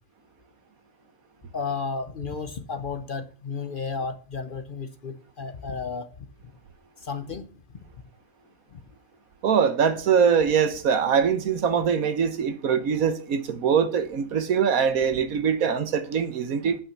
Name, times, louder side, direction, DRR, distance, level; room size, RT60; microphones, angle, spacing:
voice 1, 1.5-6.1 7.0-7.5 8.7-8.8, left 5 dB, 45° left, 0.8 m, -33 dB
voice 2, 9.4-16.8, right 7 dB, 80° right, 1.5 m, -23 dB
8.7 x 5.7 x 7.2 m
omnidirectional pair, 1.5 m